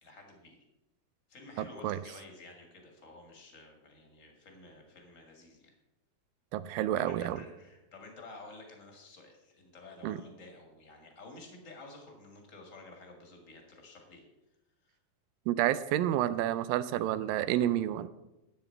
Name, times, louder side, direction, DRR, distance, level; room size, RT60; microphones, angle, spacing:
voice 1, 0.0-0.6 1.3-5.7 7.0-14.2 14.8-15.0, left 3 dB, 30° left, 2 dB, 1.7 m, -51 dB
voice 2, 1.6-2.0 6.5-7.4 10.0-10.2 15.5-18.1, right 12 dB, 90° right, 14 dB, 2.3 m, -30 dB
12.0 x 8.9 x 4.5 m, 0.95 s
omnidirectional pair, 3.9 m